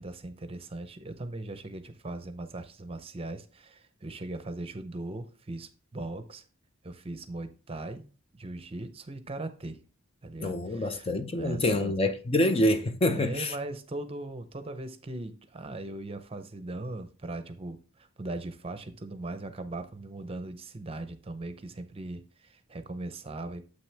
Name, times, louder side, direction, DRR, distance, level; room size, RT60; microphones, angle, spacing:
voice 1, 0.0-6.4 6.8-8.0 8.3-9.8 10.2-11.9 13.1-23.6, right 2 dB, 25° right, 0.6 m, -39 dB
voice 2, 10.4-13.5, left 1 dB, 25° left, 0.5 m, -26 dB
7.7 x 6.0 x 3.4 m
head